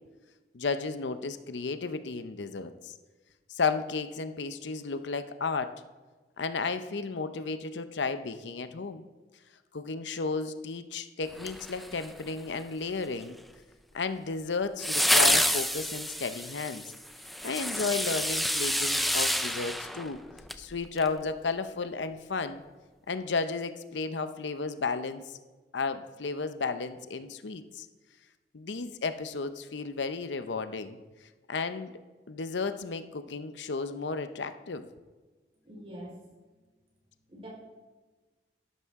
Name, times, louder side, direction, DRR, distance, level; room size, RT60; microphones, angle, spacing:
voice 1, 0.5-2.9 3.5-5.7 6.4-9.0 9.7-13.4 13.9-16.8 17.4-20.2 20.6-22.6 23.1-25.4 25.7-27.9 28.5-31.0 31.5-31.9 32.3-34.9, left 4 dB, 85° left, 10 dB, 0.7 m, -33 dB
sound 1, 11.4-12.3 14.8-20.6 21.0-21.1, equal, ahead, 0.4 m, -28 dB
voice 2, 35.6-36.2 37.3-37.5, equal, 30° right, -3 dB, 4.1 m, -44 dB
12.5 x 11.0 x 3.6 m, 1.3 s
head